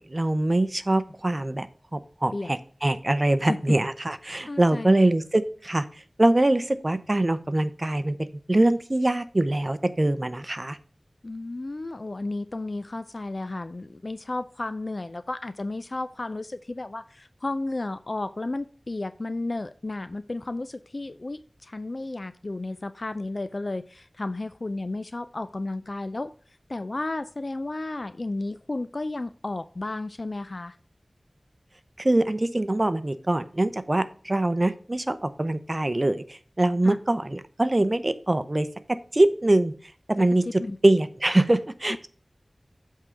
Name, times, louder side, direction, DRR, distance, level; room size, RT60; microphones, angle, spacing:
voice 1, 0.0-1.7 1.9-5.9 6.2-10.8 32.0-38.7 39.1-39.7 40.1-40.4 40.8-42.1, right 1 dB, 40° right, 12 dB, 0.6 m, -23 dB
voice 2, 4.5-5.1 11.2-26.3 26.7-30.8 36.8-37.0 40.5-40.8, left 2 dB, 55° left, 12 dB, 0.4 m, -33 dB
8.2 x 3.7 x 5.7 m, 0.43 s
wide cardioid pair, 55°, 0 cm